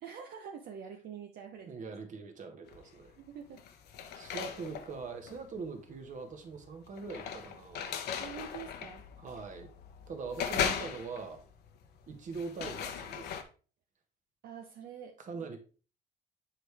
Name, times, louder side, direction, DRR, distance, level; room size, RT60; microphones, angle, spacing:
voice 1, 0.0-1.8 3.2-3.6 8.2-9.0 14.4-15.1, right 7 dB, 65° right, 2 dB, 0.9 m, -46 dB
voice 2, 1.7-3.2 4.1-8.1 9.2-9.7 10.1-11.4 12.1-13.5 15.2-15.6, right 4 dB, 50° right, 6 dB, 1.6 m, -42 dB
sound 1, 2.7-3.1 3.5-13.4, left 8 dB, 75° left, 0.9 m, -39 dB
7.7 x 4.9 x 3.4 m, 0.37 s
cardioid pair, 110°, 17 cm